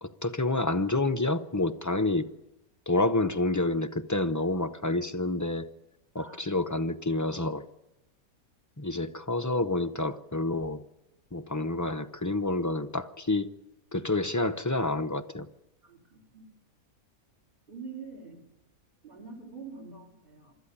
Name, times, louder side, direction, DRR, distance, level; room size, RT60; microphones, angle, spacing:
voice 1, 0.0-2.3 2.9-5.7 6.1-7.7 8.8-10.8 11.3-13.5 13.9-15.5, left 2 dB, 20° left, 7 dB, 0.4 m, -28 dB
voice 2, 15.8-16.5 17.7-18.4 19.0-20.5, right 5 dB, 35° right, 1 dB, 3.9 m, -45 dB
25.0 x 14.0 x 10.0 m, 0.98 s
omnidirectional pair, 1.6 m